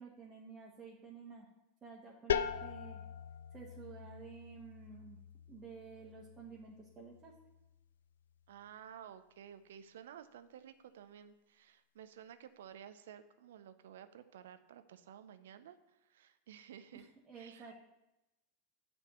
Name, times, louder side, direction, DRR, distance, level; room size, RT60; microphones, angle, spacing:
voice 1, 0.0-1.5 1.8-3.0 3.5-5.2 5.5-7.3 16.9-17.7, right 5 dB, 30° right, -2 dB, 1.4 m, -52 dB
sound 1, 2.3-7.8, left 8 dB, 75° left, 0.4 m, -41 dB
voice 2, 8.5-17.1 17.3-17.7, right 9 dB, 70° right, 10 dB, 0.6 m, -54 dB
9.2 x 3.5 x 6.9 m, 0.96 s
figure-of-eight pair, 90°, 0 cm